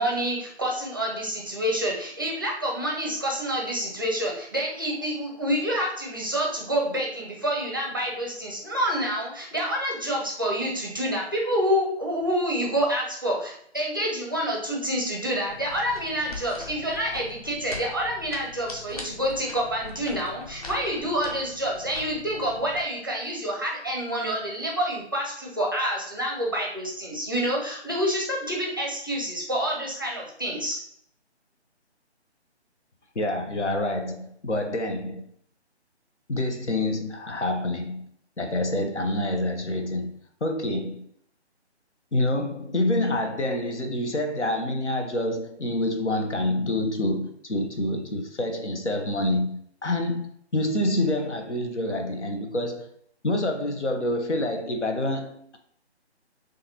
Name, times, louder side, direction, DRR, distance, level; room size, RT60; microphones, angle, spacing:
voice 1, 0.0-30.8, equal, 20° right, 0.5 m, -28 dB
sound 1, 15.5-22.8, left 3 dB, 35° left, 0.7 m, -42 dB
voice 2, 33.1-35.3 36.3-38.1 38.4-41.1 42.1-52.9 53.2-55.6, left 1 dB, 90° left, 0.9 m, -27 dB
6.5 x 2.5 x 2.8 m
figure-of-eight pair, 150°, 34 cm